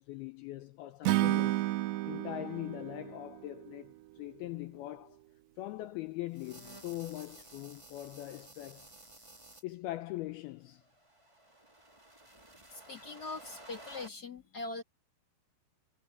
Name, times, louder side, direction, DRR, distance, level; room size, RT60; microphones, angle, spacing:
voice 1, 0.0-1.7 2.1-5.2 5.6-8.9 9.6-10.8, left 16 dB, 85° left, 2.2 m, -41 dB
Acoustic guitar / Strum, 1.0-4.3, right 17 dB, 80° right, 2.8 m, -32 dB
sound 1, 6.3-9.6 10.7-14.1, right 2 dB, 15° right, 0.9 m, -54 dB
voice 2, 12.7-14.8, left 3 dB, 40° left, 1.4 m, -42 dB
omnidirectional pair, 5.3 m